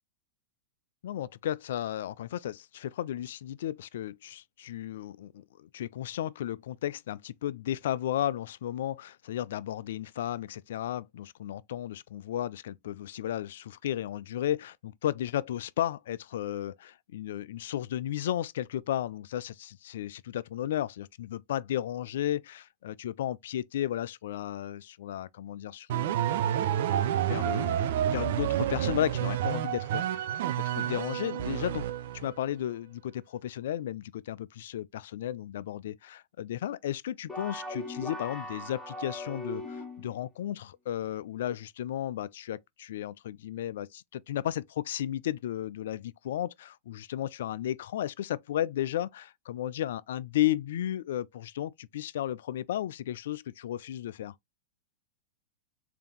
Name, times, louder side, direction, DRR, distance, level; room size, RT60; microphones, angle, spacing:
voice 1, 1.0-26.4 27.3-31.9 32.1-54.3, left 12 dB, 70° left, 0.3 m, -34 dB
sound 1, 25.9-32.4, right 11 dB, 65° right, 0.5 m, -29 dB
sound 2, 37.3-40.2, left 1 dB, 5° left, 1.1 m, -39 dB
3.5 x 2.8 x 3.6 m
hypercardioid pair, 110°, 0 cm